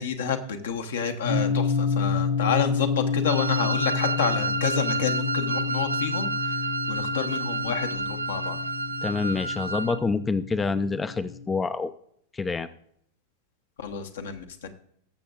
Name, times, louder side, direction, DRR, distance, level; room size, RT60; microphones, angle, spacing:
voice 1, 0.0-8.6 13.8-14.7, left 6 dB, 65° left, 6 dB, 1.1 m, -29 dB
sound 1, 1.2-11.4, left 5 dB, 85° left, 4.9 m, -29 dB
Wind instrument woodwind instrument, 3.3-10.0, right 3 dB, 75° right, 0.5 m, -30 dB
voice 2, 9.0-11.9 12.3-12.7, left 4 dB, 15° left, 13 dB, 0.5 m, -27 dB
20.5 x 6.9 x 2.5 m, 0.68 s
figure-of-eight pair, 90°, 0 cm